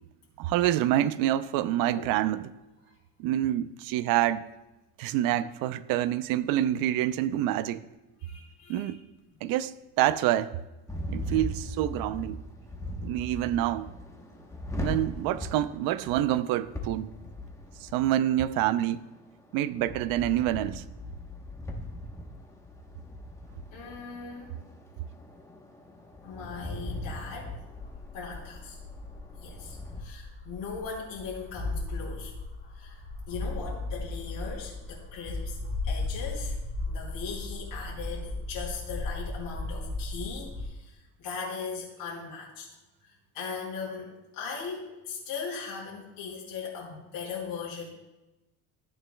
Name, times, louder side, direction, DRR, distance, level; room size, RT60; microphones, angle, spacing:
voice 1, 0.4-2.5 3.2-4.4 5.0-7.8 8.7-9.0 9.4-10.6 11.1-12.4 13.0-14.0 14.8-17.1 17.8-19.0 19.5-20.8, right 13 dB, 75° right, 0.6 m, -27 dB
voice 2, 8.2-8.9 23.7-24.5 26.2-27.5 28.1-28.8 29.4-32.3 32.7-33.0 33.3-35.6 35.8-36.5 36.9-42.7 43.0-47.8, left 5 dB, 70° left, 3.0 m, -39 dB
sound 1, 10.9-30.0, left 1 dB, 10° left, 1.0 m, -40 dB
sound 2, 27.7-40.6, left 2 dB, 30° left, 3.8 m, -36 dB
14.0 x 9.1 x 2.2 m
cardioid pair, 145°, 35 cm